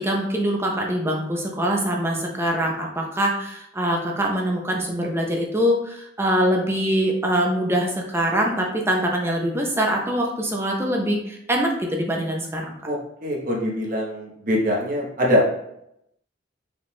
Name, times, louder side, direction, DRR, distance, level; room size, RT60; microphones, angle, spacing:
voice 1, 0.0-12.8, equal, 15° right, 0 dB, 0.5 m, -23 dB
voice 2, 12.8-15.6, left 1 dB, 45° right, -2 dB, 1.0 m, -23 dB
4.9 x 2.4 x 3.4 m, 0.79 s
head